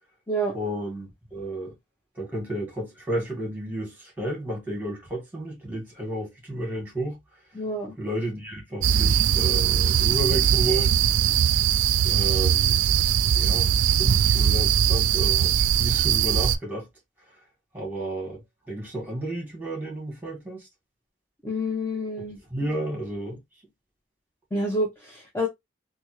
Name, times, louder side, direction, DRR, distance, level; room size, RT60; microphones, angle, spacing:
voice 1, 0.5-1.7 2.2-7.2 8.0-11.0 12.0-12.8 13.3-16.9 17.7-20.7 22.5-23.4, right 1 dB, 10° right, 2.0 m, -32 dB
voice 2, 7.5-7.9 21.4-22.4 24.5-25.5, equal, 15° left, 0.8 m, -28 dB
sound 1, 8.8-16.6, right 9 dB, 90° right, 0.3 m, -21 dB
3.4 x 2.8 x 3.0 m
head